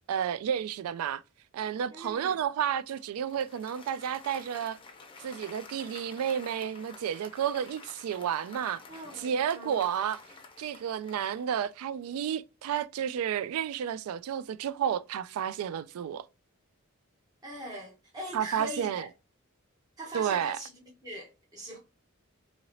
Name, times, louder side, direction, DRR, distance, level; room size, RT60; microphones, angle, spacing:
voice 1, 0.1-1.2 1.5-4.8 5.2-8.8 9.2-10.2 10.6-16.2 18.3-19.1 20.1-20.6, right 9 dB, 85° right, 0.3 m, -31 dB
voice 2, 1.9-2.4 8.9-9.9 17.4-19.1 20.0-21.8, right 1 dB, 20° right, 0.7 m, -41 dB
Applause, 2.9-11.8, left 4 dB, 25° left, 0.5 m, -51 dB
2.8 x 2.8 x 2.9 m
head